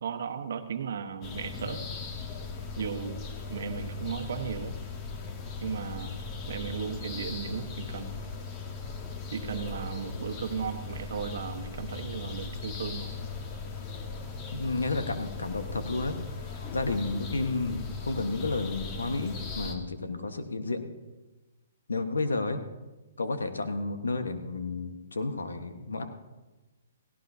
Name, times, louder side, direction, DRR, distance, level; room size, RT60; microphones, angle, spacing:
voice 1, 0.0-1.8 2.8-3.2 3.5-4.8 5.6-6.1 6.5-8.2 9.3-13.2, right 6 dB, 65° right, 8 dB, 1.1 m, -35 dB
sound 1, 1.2-19.8, left 5 dB, 30° left, 1.6 m, -38 dB
voice 2, 14.5-20.9 21.9-22.6 23.2-26.0, left 3 dB, 90° left, 7 dB, 1.3 m, -31 dB
17.0 x 17.0 x 2.7 m, 1.1 s
hypercardioid pair, 140°, 0 cm